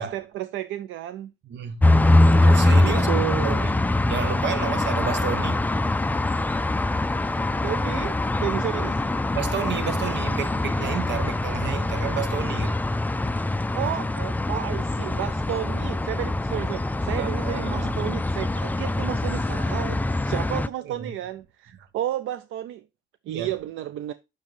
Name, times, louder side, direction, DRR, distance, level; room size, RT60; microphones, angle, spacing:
voice 1, 0.0-1.3 2.8-3.6 7.6-9.0 13.7-22.8 23.3-24.1, right 12 dB, 80° right, 0.5 m, -32 dB
voice 2, 1.5-1.8 2.4-3.1 3.4-3.8 4.0-6.5 7.1-7.3 9.3-12.8 17.2-17.9 19.8-20.0 20.8-21.1 23.3-23.5, right 8 dB, 65° right, 1.0 m, -32 dB
sound 1, 1.8-20.7, left 2 dB, 10° left, 0.4 m, -23 dB
7.3 x 6.5 x 3.1 m
cardioid pair, 90°, 20 cm